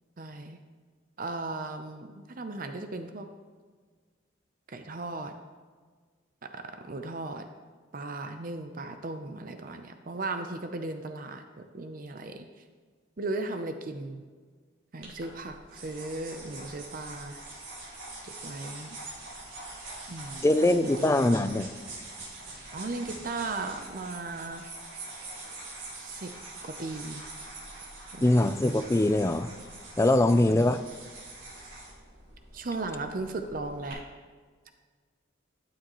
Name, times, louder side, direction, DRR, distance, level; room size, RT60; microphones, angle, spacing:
voice 1, 0.2-0.6 1.2-3.3 4.7-5.3 6.5-7.5 7.9-12.5 13.2-14.2 14.9-17.4 18.2-19.0 20.1-21.4 22.7-24.6 26.0-26.3 26.6-27.2 28.1-28.6 30.3-30.6 32.5-34.0, right 2 dB, 45° right, 7 dB, 0.6 m, -37 dB
sound 1, 15.0-33.9, right 2 dB, 85° right, 3.4 m, -44 dB
voice 2, 20.4-21.7 28.2-29.5 30.0-30.8, left 1 dB, 15° left, 10 dB, 0.3 m, -22 dB
12.5 x 9.3 x 3.0 m, 1.5 s
head